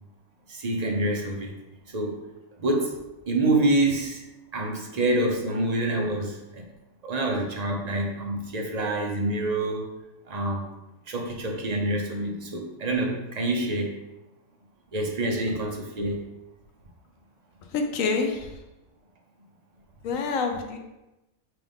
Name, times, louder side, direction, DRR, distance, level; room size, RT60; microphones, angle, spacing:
voice 1, 0.5-1.6 1.9-2.2 2.6-4.2 4.5-6.7 7.0-9.9 10.3-10.6 11.1-14.0 14.9-16.3, right 1 dB, 40° right, 0 dB, 0.6 m, -27 dB
voice 2, 17.7-18.5 20.0-20.8, left 4 dB, 70° left, 4 dB, 1.0 m, -26 dB
6.0 x 2.5 x 3.5 m, 0.98 s
omnidirectional pair, 1.5 m